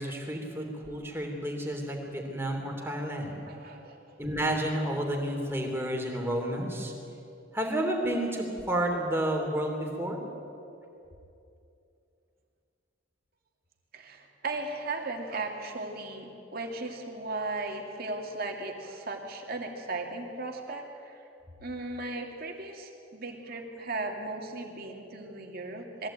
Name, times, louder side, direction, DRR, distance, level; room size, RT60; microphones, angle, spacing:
voice 1, 0.0-3.3 4.2-6.9 7.5-10.2, right 1 dB, 10° right, 1 dB, 3.0 m, -31 dB
voice 2, 3.5-4.0 13.9-21.2 21.6-26.1, right 2 dB, 50° right, 2 dB, 2.5 m, -37 dB
21.5 x 15.5 x 8.9 m, 2.6 s
head